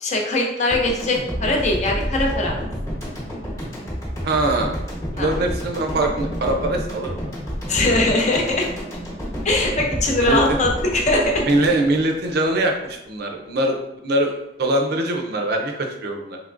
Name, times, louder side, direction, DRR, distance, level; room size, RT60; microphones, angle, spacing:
voice 1, 0.0-2.6 5.2-5.3 7.7-8.7 9.4-11.5, left 2 dB, 40° left, 0 dB, 0.6 m, -21 dB
sound 1, 0.7-12.9, equal, 15° left, 0.9 m, -29 dB
voice 2, 4.2-4.7 5.1-7.2 10.2-10.4 11.5-13.8 14.0-14.3 14.6-16.4, right 1 dB, 55° right, 3 dB, 0.5 m, -22 dB
3.5 x 3.1 x 2.5 m, 0.90 s
head